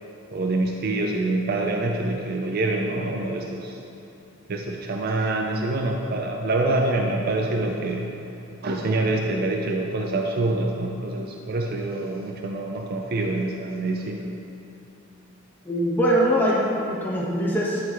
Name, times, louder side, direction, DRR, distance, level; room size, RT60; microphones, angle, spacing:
voice 1, 0.3-3.8 4.5-8.3 8.5-14.3, right 2 dB, 50° right, 1 dB, 0.5 m, -26 dB
voice 2, 15.6-17.8, equal, 10° left, -6 dB, 1.3 m, -22 dB
11.0 x 3.9 x 4.4 m, 2.8 s
head